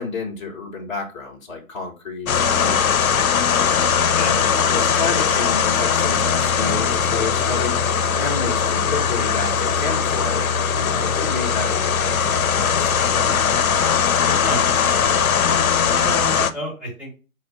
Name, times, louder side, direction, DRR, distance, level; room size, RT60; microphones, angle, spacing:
voice 1, 0.0-2.9 4.1-4.4 4.7-7.7 8.1-13.2, left 4 dB, 20° left, -3 dB, 0.8 m, -30 dB
sound 1, 2.3-16.5, left 7 dB, 80° left, 0.5 m, -20 dB
voice 2, 15.9-17.1, equal, 5° right, -5 dB, 1.3 m, -30 dB
4.3 x 2.4 x 4.0 m, 0.33 s
figure-of-eight pair, 135°, 41 cm